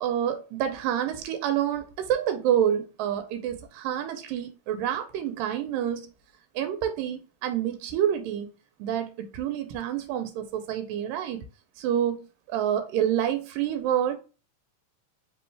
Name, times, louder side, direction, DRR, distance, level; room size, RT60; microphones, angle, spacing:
voice 1, 0.0-6.1 6.6-8.5 8.8-11.4 11.8-14.2, right 10 dB, 90° right, 2.3 m, -28 dB
4.8 x 3.0 x 3.2 m
omnidirectional pair, 3.8 m